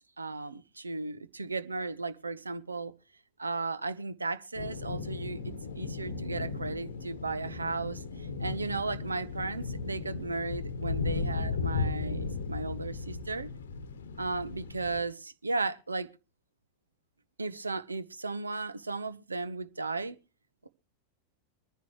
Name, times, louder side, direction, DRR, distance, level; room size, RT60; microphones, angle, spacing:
voice 1, 0.2-2.9 3.4-13.5 14.2-16.1 17.4-20.2 20.6-20.7, right 3 dB, 80° right, 0.9 m, -35 dB
sound 1, 4.6-15.0, left 4 dB, 65° left, 1.1 m, -36 dB
24.5 x 10.5 x 3.0 m
figure-of-eight pair, 90°, 0 cm